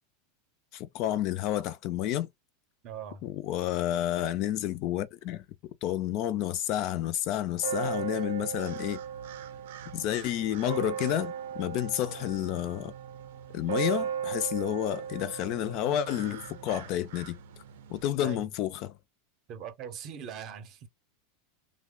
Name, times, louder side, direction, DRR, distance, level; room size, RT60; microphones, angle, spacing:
voice 1, 0.7-2.3 3.2-5.4 5.8-9.0 9.9-11.3 11.6-12.9 13.5-17.4 17.9-19.0, left 12 dB, 35° left, 0.3 m, -30 dB
voice 2, 2.8-3.3 18.2-18.5 19.5-20.9, right 8 dB, 30° right, 0.6 m, -41 dB
sound 1, 7.6-18.0, right 8 dB, 80° right, 0.6 m, -37 dB
3.1 x 2.1 x 3.6 m
supercardioid pair, 170°, 0 cm